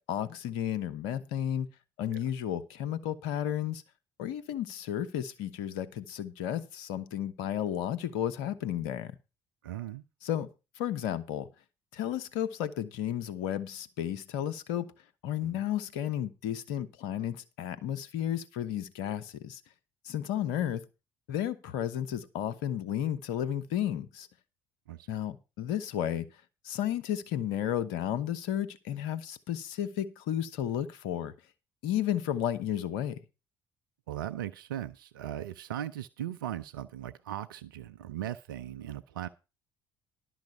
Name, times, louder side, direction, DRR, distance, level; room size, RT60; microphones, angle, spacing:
voice 1, 0.1-1.7 2.0-3.8 4.2-9.1 10.2-10.5 10.8-11.5 11.9-14.9 15.2-19.6 20.0-20.8 21.3-24.3 25.1-26.3 26.6-31.3 31.8-33.2, left 10 dB, 70° left, 1.0 m, -33 dB
voice 2, 9.6-10.0 15.4-15.6 24.9-25.1 34.1-39.3, right 11 dB, 80° right, 0.5 m, -38 dB
11.5 x 6.2 x 6.5 m
figure-of-eight pair, 55°, 11 cm